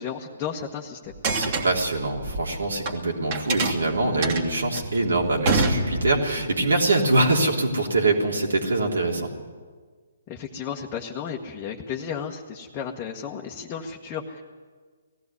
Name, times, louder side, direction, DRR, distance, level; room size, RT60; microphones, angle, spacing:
voice 1, 0.0-1.1 10.3-14.4, left 7 dB, 25° left, -1 dB, 1.3 m, -33 dB
sound 1, 1.1-3.0 3.3-6.4, right 3 dB, 40° right, 2.4 m, -26 dB
voice 2, 1.3-9.3, right 2 dB, 80° right, 0 dB, 3.4 m, -23 dB
18.5 x 15.0 x 9.7 m, 1.5 s
hypercardioid pair, 140°, 0 cm